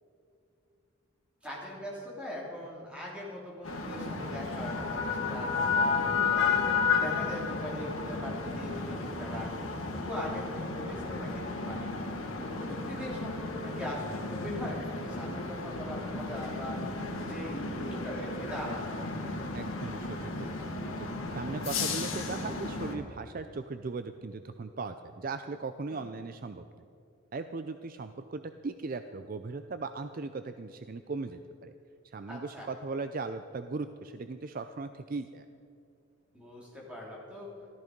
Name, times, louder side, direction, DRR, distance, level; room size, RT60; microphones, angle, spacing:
voice 1, 1.4-6.6 7.0-9.5 9.9-12.0 12.4-19.0 25.9-26.1 32.3-32.7 36.3-37.5, left 1 dB, 5° right, -5 dB, 3.2 m, -41 dB
sound 1, 3.6-22.9, left 4 dB, 75° left, 1.9 m, -33 dB
voice 2, 19.5-26.6 27.3-31.7 32.0-35.5, right 3 dB, 45° right, 9 dB, 0.4 m, -38 dB
14.5 x 14.0 x 5.2 m, 2.5 s
head